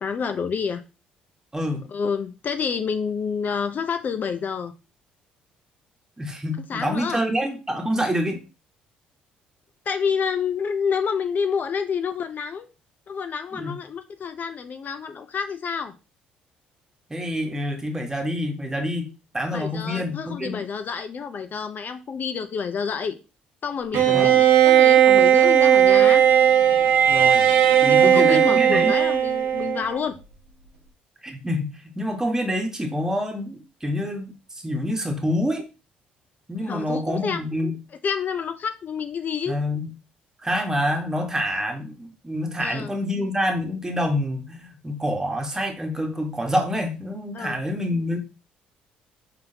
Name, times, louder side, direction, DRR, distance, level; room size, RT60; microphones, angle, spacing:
voice 1, 0.0-0.8 1.9-4.7 6.7-7.2 9.9-12.7 13.1-15.9 19.5-23.2 23.6-26.2 27.9-30.2 36.6-37.4 38.0-39.6 42.6-42.9 47.3-47.6, left 6 dB, 50° left, 0.5 m, -28 dB
voice 2, 6.2-8.4 13.5-13.7 17.1-20.7 24.1-24.3 27.1-27.4 27.8-28.9 31.2-34.3 34.6-35.6 36.5-37.8 39.5-39.9 40.4-48.2, equal, 15° right, 1.2 m, -27 dB
Bowed string instrument, 23.9-30.0, right 10 dB, 70° right, 0.9 m, -16 dB
4.1 x 3.7 x 2.7 m
hypercardioid pair, 60°, 4 cm